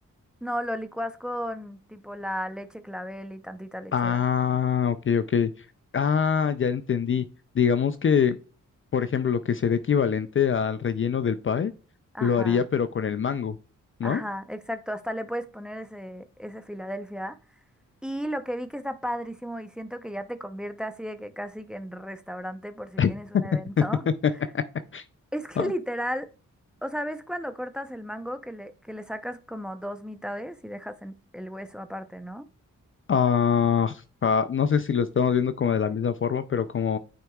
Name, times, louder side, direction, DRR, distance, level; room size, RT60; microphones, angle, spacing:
voice 1, 0.4-4.2 12.1-12.6 14.0-17.4 18.0-24.1 25.3-26.3 26.8-32.4, equal, 5° right, 0.7 m, -34 dB
voice 2, 3.9-5.5 5.9-7.2 7.5-8.4 8.9-11.7 12.2-13.6 14.0-14.2 23.0-23.1 24.5-24.6 24.9-25.0 25.6-25.7 33.1-37.0, left 7 dB, 40° left, 0.5 m, -24 dB
9.0 x 4.6 x 2.3 m
cardioid pair, 55°, 32 cm